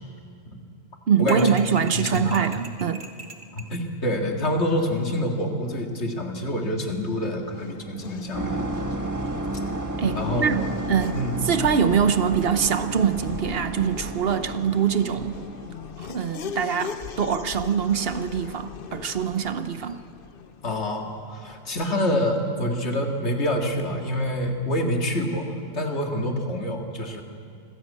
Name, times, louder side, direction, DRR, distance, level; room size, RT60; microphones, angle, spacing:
voice 1, 1.1-3.1 10.0-15.4 16.0-20.0, right 7 dB, 60° right, 11 dB, 1.0 m, -24 dB
sound 1, 1.3-3.7, right 3 dB, 45° right, 1.5 m, -42 dB
voice 2, 1.9-2.4 3.5-8.6 10.2-10.8 11.1-11.3 20.6-25.5 25.7-27.2, left 1 dB, 70° left, 3 dB, 2.3 m, -27 dB
Race car auto racing / Accelerating revving vroom, 6.6-22.1, left 7 dB, 55° left, 0.9 m, -40 dB
sound 2, 8.3-15.9, right 2 dB, 15° right, 1.3 m, -32 dB
25.0 x 16.0 x 8.4 m, 2.4 s
omnidirectional pair, 1.2 m